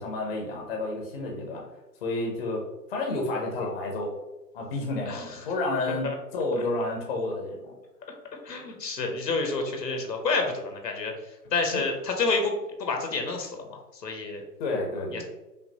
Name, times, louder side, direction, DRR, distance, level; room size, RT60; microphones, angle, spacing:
voice 1, 0.0-1.6 2.0-4.1 4.5-6.1 6.3-7.7 11.7-11.8 14.6-15.2, left 2 dB, 35° left, 0 dB, 0.7 m, -30 dB
voice 2, 5.1-5.4 6.0-6.1 8.4-11.1 11.5-12.5 12.8-14.4 15.1-15.2, left 3 dB, 80° left, 3 dB, 1.1 m, -29 dB
5.2 x 2.3 x 2.7 m, 1.0 s
figure-of-eight pair, 135°, 49 cm